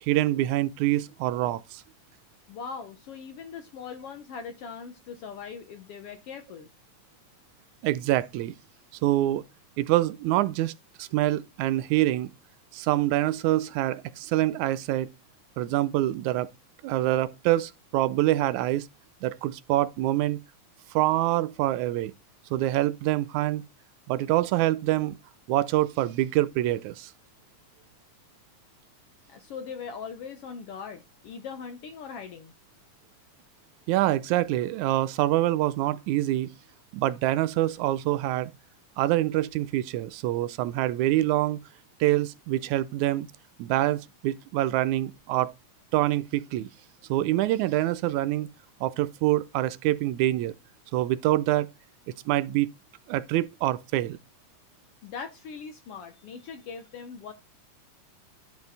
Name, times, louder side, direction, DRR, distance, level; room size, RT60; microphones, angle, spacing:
voice 1, 0.0-1.8 7.8-8.6 9.0-9.4 9.8-10.7 11.0-12.3 12.7-15.1 15.6-16.5 16.8-18.9 19.2-20.4 20.9-22.1 22.5-23.6 24.1-25.2 25.5-27.1 33.9-36.5 36.9-38.5 39.0-41.6 42.0-43.3 43.6-45.5 45.9-46.7 47.1-48.5 48.8-50.5 50.9-51.7 52.3-52.7 53.1-54.2, right 15 dB, 80° right, 1.9 m, -25 dB
voice 2, 2.5-6.7 29.3-32.5 55.0-57.3, left 6 dB, 70° left, 1.5 m, -40 dB
10.5 x 4.6 x 3.9 m
omnidirectional pair, 3.5 m